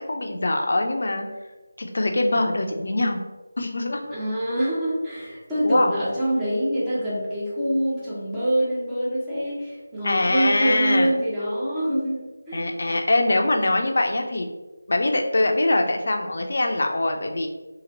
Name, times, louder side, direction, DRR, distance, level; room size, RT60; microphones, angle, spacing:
voice 1, 0.1-1.3 1.8-3.2 3.6-4.0 5.6-5.9 10.0-11.1 12.5-14.5 14.9-17.5, left 2 dB, 55° left, 3 dB, 0.5 m, -23 dB
voice 2, 4.1-12.7, equal, 10° right, -10 dB, 0.8 m, -25 dB
2.9 x 2.8 x 3.9 m, 1.2 s
figure-of-eight pair, 165°, 0 cm